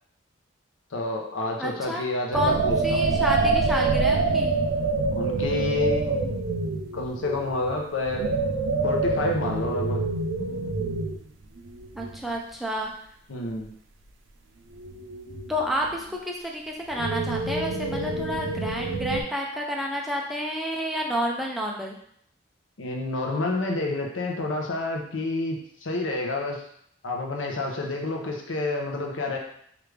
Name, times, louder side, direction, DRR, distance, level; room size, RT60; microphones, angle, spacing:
voice 1, 0.9-3.0 5.1-6.2 6.9-8.3 8.8-10.0 13.3-13.7 22.8-26.6 27.0-29.4, left 2 dB, 90° left, 1 dB, 0.7 m, -29 dB
voice 2, 1.6-2.1 2.3-4.6 12.0-12.9 15.5-22.0, equal, ahead, -2 dB, 0.4 m, -30 dB
sound 1, 2.3-11.3 11.6-12.2 14.7-16.0 16.9-19.2, right 3 dB, 90° right, 0.4 m, -26 dB
3.4 x 2.5 x 3.2 m, 0.67 s
head